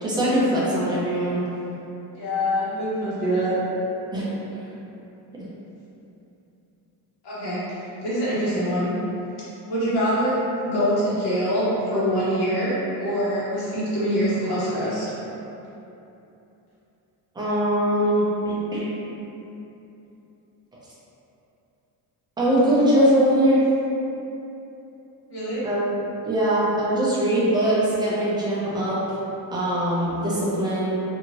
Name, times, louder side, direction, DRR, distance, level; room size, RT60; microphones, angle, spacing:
voice 1, 0.0-1.5 4.1-4.4 17.4-18.9 22.4-23.7 25.6-25.9 26.2-29.0 29.5-31.0, right 1 dB, 10° right, -8 dB, 0.5 m, -21 dB
voice 2, 2.2-3.5 7.2-8.9 9.7-10.4 10.6-15.0 25.3-25.6, equal, 65° left, -10 dB, 1.1 m, -24 dB
2.7 x 2.6 x 2.9 m, 2.9 s
cardioid pair, 170°, 40 cm